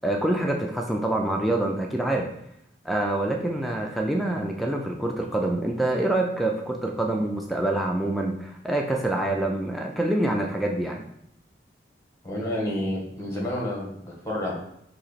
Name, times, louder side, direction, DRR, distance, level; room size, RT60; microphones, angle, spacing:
voice 1, 0.0-2.3 2.8-11.0, right 1 dB, ahead, 0 dB, 0.4 m, -26 dB
voice 2, 12.2-14.5, left 1 dB, 15° left, -3 dB, 1.3 m, -29 dB
4.3 x 2.9 x 4.0 m, 0.75 s
head